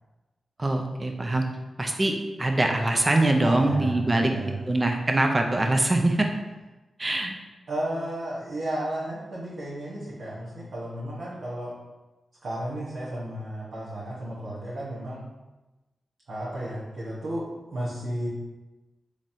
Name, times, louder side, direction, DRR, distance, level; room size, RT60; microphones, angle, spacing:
voice 1, 0.6-1.4 1.8-2.1 2.4-6.3 7.0-7.3, right 2 dB, 30° right, 3 dB, 0.5 m, -23 dB
voice 2, 3.4-4.6 7.7-11.7 12.4-15.3 16.3-18.3, right 1 dB, 75° right, -10 dB, 0.9 m, -33 dB
3.9 x 3.0 x 2.6 m, 1.1 s
cardioid pair, 65°, 0 cm